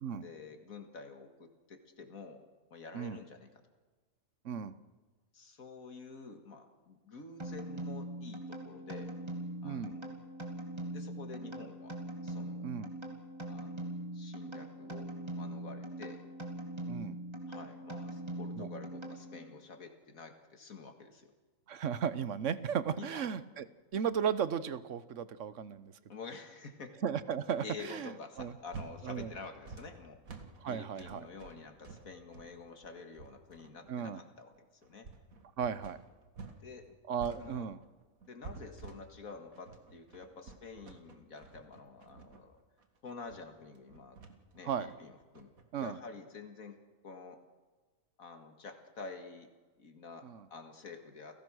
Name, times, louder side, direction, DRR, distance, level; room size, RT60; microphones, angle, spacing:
voice 1, 0.0-2.4 2.7-3.5 5.3-9.1 9.6-10.2 10.9-12.0 12.2-12.7 13.5-13.8 14.1-16.2 17.5-21.3 23.0-23.2 26.1-27.0 27.6-30.2 30.7-34.5 34.8-35.1 36.5-36.9 37.4-37.7 38.3-42.6 43.0-44.2 44.5-45.5 45.8-47.4 48.2-49.5 49.8-51.4, left 4 dB, 90° left, 6 dB, 2.4 m, -49 dB
sound 1, 7.4-19.6, right 1 dB, 20° right, 2.8 m, -42 dB
voice 2, 9.6-9.9 12.6-12.9 16.9-17.2 18.6-18.7 21.7-23.6 23.9-25.9 27.0-28.1 28.4-28.5 29.0-29.3 30.6-31.3 33.9-34.2 35.6-36.0 37.1-37.8 44.6-44.9 45.7-46.0 50.2-50.4, right 7 dB, 65° right, 15 dB, 1.3 m, -35 dB
sound 2, 28.3-36.6 36.9-45.6, right 4 dB, 85° right, 2.3 m, -50 dB
29.0 x 17.0 x 6.3 m, 1.3 s
omnidirectional pair, 1.4 m